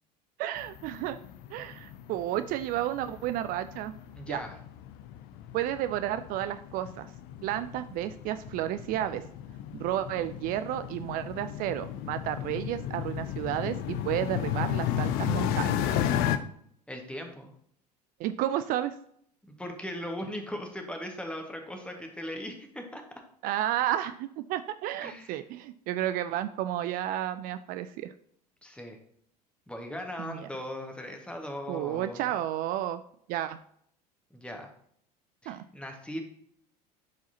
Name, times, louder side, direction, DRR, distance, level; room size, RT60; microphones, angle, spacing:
voice 1, 0.4-1.2 1.5-3.9 4.3-4.4 5.5-7.1 7.4-9.2 9.7-15.9 18.2-18.9 23.4-28.1 30.2-30.5 31.7-33.0 33.3-33.6 35.5-35.6, right 12 dB, 45° right, 11 dB, 0.4 m, -32 dB
sound 1, 0.6-16.4, left 10 dB, 50° left, 0.6 m, -34 dB
voice 2, 4.2-4.5 16.9-17.5 19.4-23.0 25.0-25.4 28.6-29.0 29.7-32.3 34.3-34.7 35.4-36.2, left 1 dB, 5° left, 3 dB, 1.6 m, -39 dB
11.5 x 4.7 x 2.8 m, 0.67 s
figure-of-eight pair, 70°, 21 cm